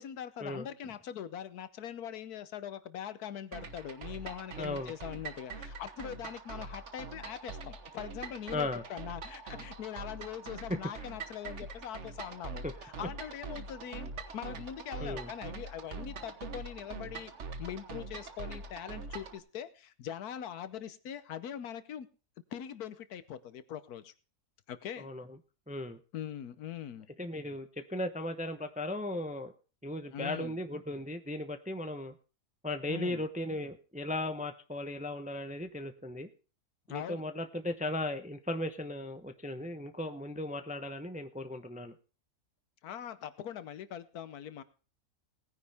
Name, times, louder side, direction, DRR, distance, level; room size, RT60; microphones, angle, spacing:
voice 1, 0.0-17.3 17.6-22.1 22.5-24.1 24.7-25.1 26.1-27.1 30.1-30.6 32.9-33.2 36.9-37.2 42.8-44.6, left 9 dB, 80° left, 13 dB, 1.4 m, -42 dB
sound 1, 3.5-19.4, right 4 dB, 55° right, 1.4 m, -44 dB
voice 2, 4.6-4.9 8.5-8.8 12.6-12.7 15.0-15.3 25.0-25.2 25.7-26.0 27.2-29.5 29.8-32.1 32.6-36.3 36.9-41.9, left 1 dB, 10° right, 8 dB, 0.5 m, -37 dB
19.0 x 9.8 x 3.5 m, 0.36 s
omnidirectional pair, 1.6 m